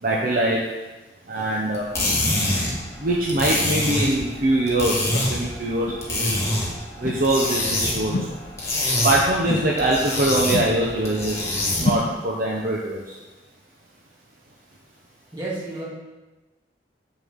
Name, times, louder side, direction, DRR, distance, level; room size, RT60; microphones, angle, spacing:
voice 1, 0.0-0.7 1.3-1.9 3.0-6.4 7.0-8.4 9.0-11.4 11.8-13.2, right 1 dB, 55° right, -2 dB, 0.9 m, -23 dB
sound 1, 1.7-12.1, left 1 dB, 15° left, 1.6 m, -26 dB
sound 2, 3.3-3.4 4.2-4.3 5.1-5.3 5.9-6.0 7.0-7.3 8.1-8.4 9.5-9.8 10.5-10.8 11.8-12.1, left 2 dB, 45° left, 0.5 m, -27 dB
voice 2, 15.3-15.8, right 2 dB, 25° right, -7 dB, 2.5 m, -31 dB
8.2 x 6.9 x 3.7 m, 1.1 s
head